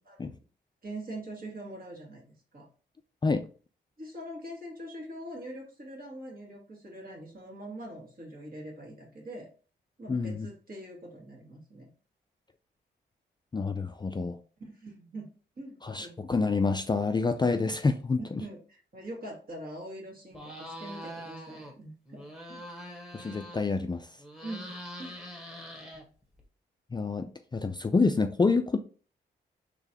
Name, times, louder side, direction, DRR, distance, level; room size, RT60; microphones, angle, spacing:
voice 1, 0.8-2.7 4.0-9.5 10.0-11.9 14.6-15.3 15.6-16.2 18.2-22.2 22.5-22.6 24.4-24.7 25.0-25.1, right 1 dB, 50° right, 1.8 m, -43 dB
voice 2, 10.1-10.5 13.5-14.4 15.8-18.4 23.1-24.1 26.9-28.8, left 4 dB, 20° left, 0.4 m, -27 dB
sound 1, 20.3-21.7 22.1-23.9 24.2-26.4, equal, 5° right, 1.3 m, -43 dB
3.8 x 3.2 x 2.9 m
cardioid pair, 55°, 20 cm